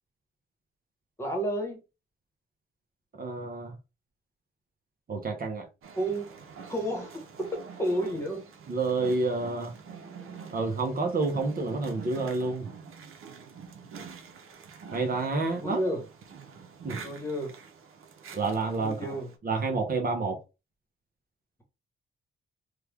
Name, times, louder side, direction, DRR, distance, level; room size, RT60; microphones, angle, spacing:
voice 1, 1.2-1.8 6.0-6.3 6.7-8.4 15.6-16.0 17.0-17.5 18.8-19.3, right 1 dB, 10° left, 1.1 m, -31 dB
voice 2, 3.2-3.7 5.1-5.7 8.7-9.7 10.5-12.7 14.9-15.8 16.8-17.0 18.3-19.1 19.4-20.4, right 3 dB, 45° right, 0.7 m, -29 dB
sound 1, 5.8-19.4, right 6 dB, 85° right, 0.7 m, -46 dB
3.2 x 2.3 x 3.4 m
wide cardioid pair, 155°, 21 cm